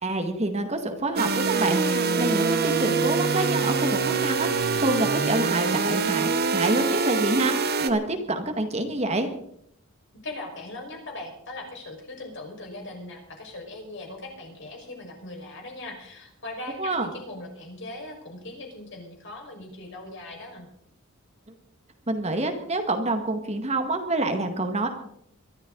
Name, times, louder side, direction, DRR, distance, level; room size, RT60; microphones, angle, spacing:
voice 1, 0.0-9.3 16.8-17.1 22.1-24.9, right 2 dB, 30° right, 5 dB, 1.9 m, -27 dB
sound 1, 1.2-7.9, right 4 dB, 50° right, 1.1 m, -24 dB
voice 2, 10.2-20.7, left 2 dB, 60° left, 1 dB, 5.4 m, -39 dB
23.5 x 13.0 x 4.0 m, 0.71 s
head